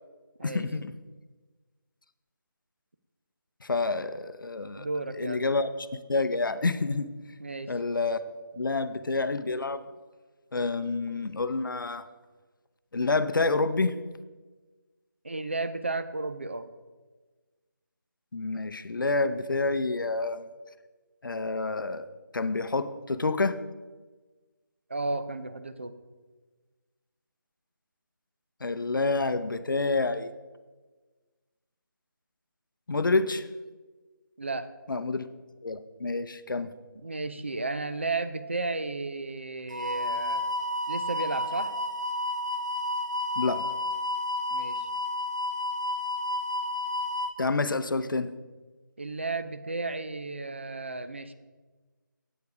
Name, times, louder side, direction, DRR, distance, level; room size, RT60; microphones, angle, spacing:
voice 1, 0.4-0.9 3.6-4.9 5.2-7.1 7.7-8.2 8.6-9.8 10.5-12.1 12.9-13.9 18.3-20.5 21.2-22.1 22.3-23.6 28.6-30.3 32.9-33.5 34.9-35.3 35.6-36.7 43.4-43.7 47.4-48.3, left 3 dB, 75° left, 12 dB, 0.6 m, -28 dB
voice 2, 4.8-5.4 7.4-7.7 15.2-16.7 24.9-25.9 34.4-34.7 37.0-40.4 40.9-41.7 44.5-44.9 49.0-51.3, right 3 dB, 35° right, 11 dB, 0.4 m, -33 dB
sound 1, 39.7-47.3, left 1 dB, 60° right, 0.8 m, -31 dB
8.2 x 7.1 x 4.7 m, 1.3 s
figure-of-eight pair, 175°, 11 cm